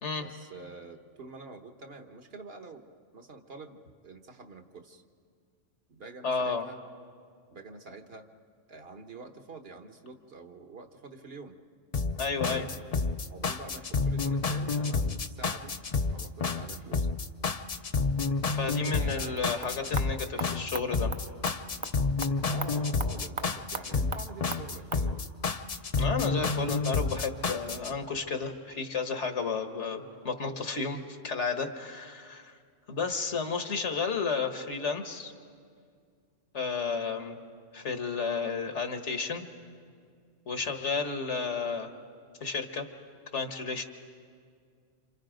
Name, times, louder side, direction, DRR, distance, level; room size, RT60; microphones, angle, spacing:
voice 1, 0.2-2.9 3.1-5.0 5.9-6.8 7.5-8.3 8.7-11.6 12.4-12.7 13.3-15.7 16.1-17.1 18.6-19.5 22.5-25.3, right 3 dB, 55° right, 6 dB, 1.5 m, -46 dB
voice 2, 6.2-6.7 12.2-12.7 18.5-21.1 26.0-32.6 32.9-35.3 36.5-37.4 37.7-39.4 40.5-41.9 42.4-42.9 43.3-43.8, left 5 dB, 70° left, 6 dB, 1.7 m, -32 dB
sound 1, 11.9-27.9, left 4 dB, 40° left, 0.7 m, -29 dB
sound 2, 19.4-25.1, right 4 dB, 30° right, 0.6 m, -41 dB
28.5 x 27.5 x 5.1 m, 2.2 s
omnidirectional pair, 1.3 m